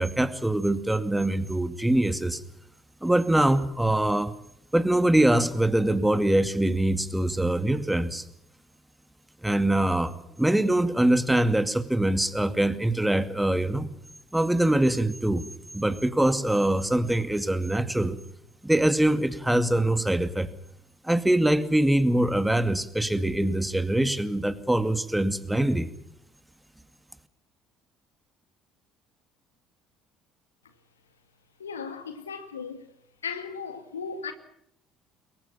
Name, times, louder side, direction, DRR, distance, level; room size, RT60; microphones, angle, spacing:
voice 1, 0.0-2.4 3.0-4.3 4.7-8.2 9.4-13.9 14.3-15.5 15.7-18.2 18.6-20.5 21.0-25.9, right 1 dB, 5° right, 2.3 m, -23 dB
voice 2, 31.6-32.9 33.2-34.3, left 5 dB, 85° left, 1.9 m, -36 dB
28.5 x 22.5 x 5.8 m
figure-of-eight pair, 55°, 0 cm